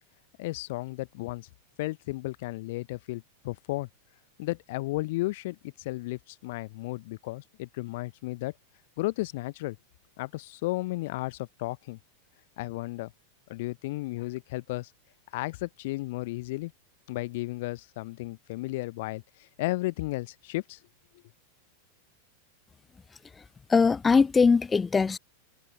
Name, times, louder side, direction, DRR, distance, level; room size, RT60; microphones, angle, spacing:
voice 1, 0.4-1.5 1.8-3.9 4.4-8.5 9.0-9.8 10.2-12.0 12.6-13.1 13.5-14.9 15.3-16.7 17.1-20.8, left 20 dB, 50° left, 0.8 m, -34 dB
voice 2, 23.7-25.2, left 5 dB, 15° left, 0.4 m, -21 dB
figure-of-eight pair, 90°, 0 cm